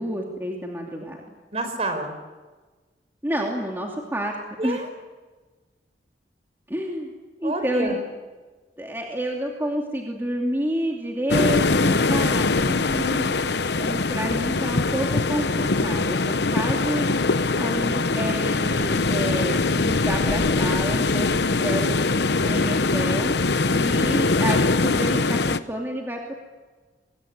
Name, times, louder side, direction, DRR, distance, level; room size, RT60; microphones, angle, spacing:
voice 1, 0.0-1.3 3.2-4.4 4.6-4.9 6.7-7.1 7.4-8.0 8.8-12.8 13.8-17.1 17.6-22.0 22.4-23.3 23.6-26.4, right 1 dB, 15° right, -1 dB, 2.7 m, -29 dB
voice 2, 1.5-2.1 4.6-4.8 7.4-8.0 12.6-13.3, right 1 dB, 35° right, 7 dB, 4.8 m, -28 dB
sound 1, 11.3-25.6, left 3 dB, 70° left, 0.9 m, -22 dB
25.0 x 22.5 x 9.4 m, 1.3 s
head